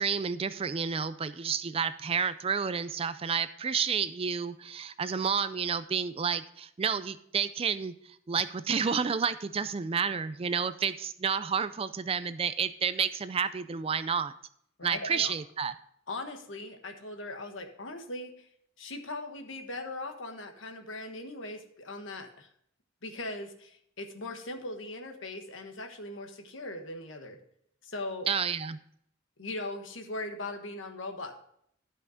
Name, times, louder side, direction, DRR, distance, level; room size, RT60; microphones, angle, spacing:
voice 1, 0.0-7.9 8.3-14.3 14.8-15.7 28.3-28.8, right 6 dB, 30° right, 13 dB, 0.4 m, -30 dB
voice 2, 14.8-15.3 16.1-18.5 18.8-22.5 23.0-27.4 27.8-28.3 29.4-31.5, left 2 dB, 65° left, 5 dB, 1.3 m, -39 dB
12.0 x 5.6 x 5.0 m, 0.70 s
head